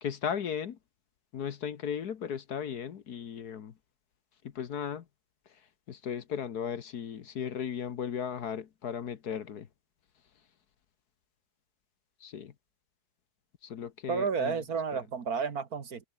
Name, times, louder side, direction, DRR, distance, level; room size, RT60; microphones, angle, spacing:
voice 1, 0.0-0.8 1.3-3.7 4.4-5.0 5.5-5.6 5.9-9.7 12.2-12.5 13.6-14.6, left 8 dB, 60° left, 1.6 m, -36 dB
voice 2, 14.1-16.1, right 6 dB, 55° right, 2.0 m, -31 dB
omnidirectional pair, 2.0 m